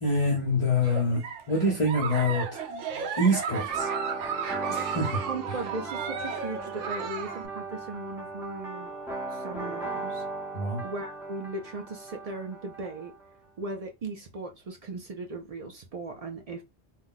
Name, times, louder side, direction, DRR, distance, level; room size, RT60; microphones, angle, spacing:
voice 1, 0.0-2.6 3.2-3.9 4.7-5.2 10.5-10.8, left 1 dB, 30° left, 0.7 m, -26 dB
Giggle, 0.8-7.5, right 6 dB, 85° right, 0.9 m, -34 dB
sound 1, 3.7-13.3, right 3 dB, ahead, 0.6 m, -37 dB
voice 2, 5.3-8.9 9.3-10.2 10.8-13.1 13.6-16.6, right 2 dB, 70° right, 0.3 m, -37 dB
2.3 x 2.2 x 3.8 m
omnidirectional pair, 1.2 m